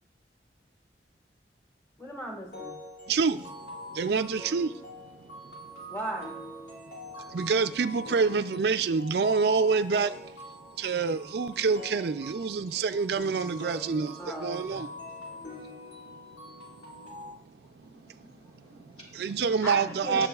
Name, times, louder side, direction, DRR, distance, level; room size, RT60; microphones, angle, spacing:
voice 1, 2.0-2.7 5.9-6.4 14.2-14.9 15.4-15.6 19.6-20.3, equal, 15° left, 1.5 m, -37 dB
sound 1, 2.5-17.3, left 1 dB, 90° left, 4.5 m, -44 dB
voice 2, 3.1-3.4 3.9-4.7 7.3-10.1 10.8-14.9 19.1-20.3, right 5 dB, 65° right, 0.4 m, -26 dB
voice 3, 17.8-19.7 20.1-20.3, right 1 dB, 30° left, 2.3 m, -48 dB
17.5 x 7.1 x 2.4 m
head